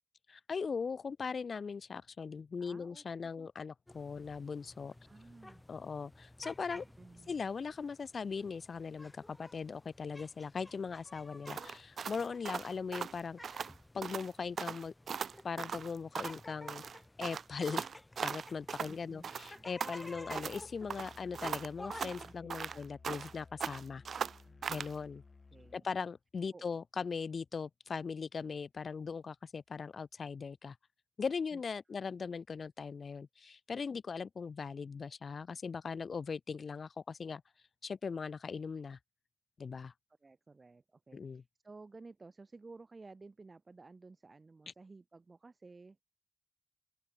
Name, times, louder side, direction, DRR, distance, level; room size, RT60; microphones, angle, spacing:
voice 1, 0.3-4.9 5.7-6.8 7.3-13.7 13.9-14.9 15.4-16.8 17.2-17.9 18.2-24.0 24.7-25.2 25.7-30.8 31.2-37.4 37.8-39.0 39.6-39.9 41.1-41.4, left 5 dB, 60° left, 1.0 m, -39 dB
voice 2, 2.6-3.0 3.4-3.5 5.0-5.6 6.7-7.3 18.9-19.7 22.2-22.9 24.2-24.7 25.5-25.9 26.5-26.8 31.5-31.6 40.2-46.0, right 3 dB, 35° right, 5.4 m, -55 dB
sound 1, 3.9-22.4, left 1 dB, 15° left, 2.6 m, -54 dB
sound 2, 11.5-13.7 14.0-14.3 14.6-16.4 16.7-19.0 19.2-20.6 20.9-23.4 23.6-24.9, right 6 dB, 75° right, 0.5 m, -39 dB
Musical instrument, 20.1-25.8, left 4 dB, 40° left, 7.8 m, -58 dB
open air
wide cardioid pair, 90°, 0 cm